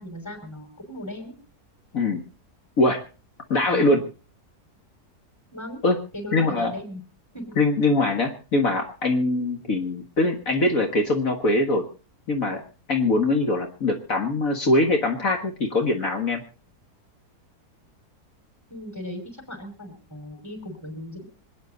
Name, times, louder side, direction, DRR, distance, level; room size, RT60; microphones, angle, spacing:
voice 1, 0.0-1.3 3.6-4.0 5.5-5.8 6.1-7.0 7.3-7.6 18.7-21.3, equal, 10° left, 3 dB, 5.5 m, -37 dB
voice 2, 3.5-4.0 5.8-6.0 6.3-6.7 7.6-11.8 12.3-12.6 12.9-16.4, left 2 dB, 60° left, 3 dB, 2.0 m, -22 dB
26.5 x 9.6 x 4.0 m, 0.36 s
omnidirectional pair, 1.6 m